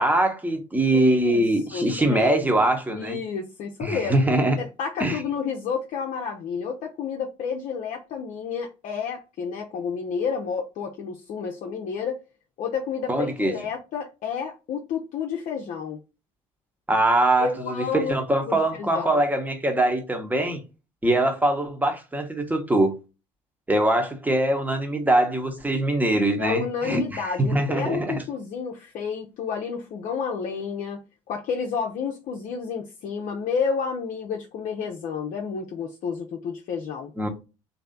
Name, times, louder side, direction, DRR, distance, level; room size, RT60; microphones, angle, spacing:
voice 1, 0.0-3.2 3.8-4.6 5.0-5.2 13.1-13.5 16.9-20.6 21.0-22.9 23.7-28.2 37.2-37.3, right 1 dB, 10° right, 1.0 m, -23 dB
voice 2, 0.9-2.4 2.9-4.2 4.6-12.2 12.6-16.0 17.4-18.2 18.5-19.2 26.4-31.0 31.3-37.1, left 6 dB, 50° left, 0.7 m, -30 dB
3.2 x 2.7 x 3.8 m
figure-of-eight pair, 55°, 17 cm